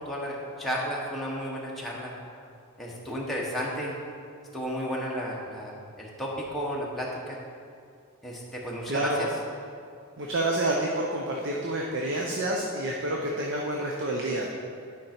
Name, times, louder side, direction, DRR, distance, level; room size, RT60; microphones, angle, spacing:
voice 1, 0.0-2.1 2.8-4.0 4.5-7.4 8.2-9.3, equal, ahead, -5 dB, 1.1 m, -33 dB
voice 2, 8.9-9.3 10.2-14.5, right 1 dB, 55° right, -1 dB, 0.7 m, -28 dB
10.5 x 5.2 x 4.4 m, 2.3 s
head